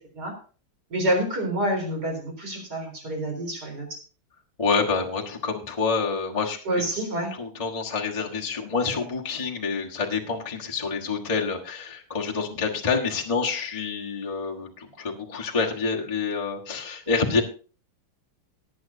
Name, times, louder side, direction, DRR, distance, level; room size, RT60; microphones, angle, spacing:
voice 1, 0.9-3.9 6.7-7.3, right 1 dB, 45° right, 2 dB, 4.6 m, -27 dB
voice 2, 4.6-6.6 7.4-17.4, left 4 dB, 20° left, -2 dB, 1.3 m, -27 dB
18.5 x 9.4 x 2.8 m, 0.37 s
omnidirectional pair, 2.3 m